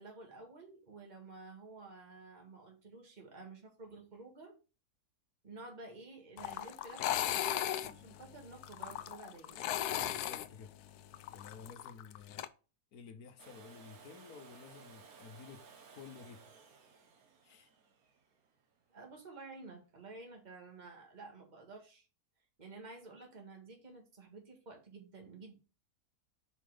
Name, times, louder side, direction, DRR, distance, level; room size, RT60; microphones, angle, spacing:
voice 1, 0.0-4.6 5.4-10.2 18.9-22.1 22.6-25.6, right 3 dB, 30° right, 1.9 m, -52 dB
sound 1, 6.4-12.5, left 12 dB, 90° left, 1.1 m, -37 dB
voice 2, 9.9-10.7 11.3-12.4 12.9-15.6 15.9-16.4 17.4-17.7, left 6 dB, 75° left, 1.4 m, -52 dB
Domestic sounds home sounds, 13.4-19.2 21.1-21.2, right 5 dB, 70° right, 1.6 m, -58 dB
5.7 x 5.2 x 5.0 m
omnidirectional pair, 1.6 m